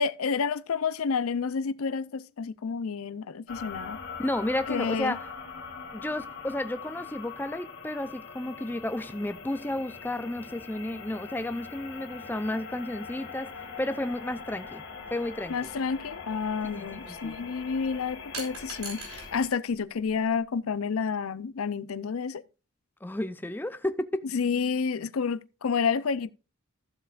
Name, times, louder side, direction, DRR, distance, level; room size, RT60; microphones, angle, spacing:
voice 1, 0.0-4.0 4.7-5.2 15.5-22.4 24.3-26.3, left 5 dB, 90° left, 0.5 m, -29 dB
sound 1, 3.5-19.5, left 5 dB, 55° left, 2.1 m, -42 dB
voice 2, 4.2-5.2 5.9-13.5 13.8-14.8 15.1-15.5 16.7-17.3 23.0-24.3, left 1 dB, 10° left, 0.5 m, -32 dB
sound 2, 18.3-19.3 19.6-20.5, right 4 dB, 85° right, 4.1 m, -41 dB
14.5 x 7.6 x 2.4 m
head